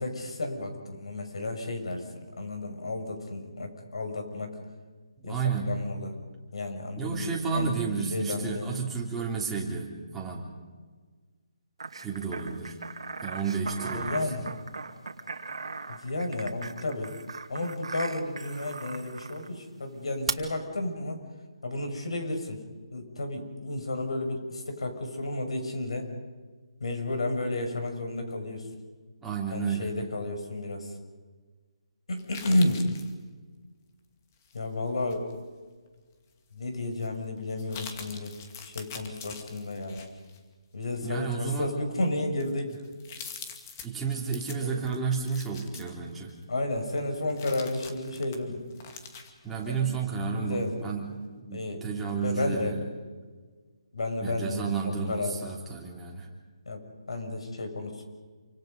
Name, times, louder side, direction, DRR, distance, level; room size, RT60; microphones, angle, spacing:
voice 1, 0.0-2.0 2.4-4.5 5.2-5.4 5.6-6.1 6.5-7.7 8.1-8.7 13.9-14.5 15.9-17.1 17.5-21.2 21.6-22.6 22.9-26.1 26.8-28.7 29.5-30.9 32.1-32.9 34.5-35.2 36.5-38.3 38.6-40.1 40.7-42.7 44.6-44.8 46.5-48.6 49.5-50.7 51.5-51.8 52.1-52.8 53.9-55.4 56.7-58.0, left 2 dB, 75° left, 5 dB, 6.4 m, -32 dB
voice 2, 5.2-5.7 7.0-10.5 12.0-12.8 13.2-14.4 29.2-29.9 41.0-41.7 43.8-46.3 49.4-52.8 54.2-56.3, right 5 dB, 5° right, -4 dB, 3.3 m, -32 dB
sound 1, 11.8-19.5 20.3-20.4, right 4 dB, 75° right, 2.4 m, -38 dB
sound 2, 32.2-33.1 34.4-35.4 35.9-36.0 36.9-37.1 37.5-40.4 40.8-41.1 41.7-41.8 42.2-46.4 46.9-50.2 50.6-50.7, left 6 dB, 30° left, 2.4 m, -45 dB
28.5 x 25.5 x 5.4 m, 1.4 s
hypercardioid pair, 165°, 3 cm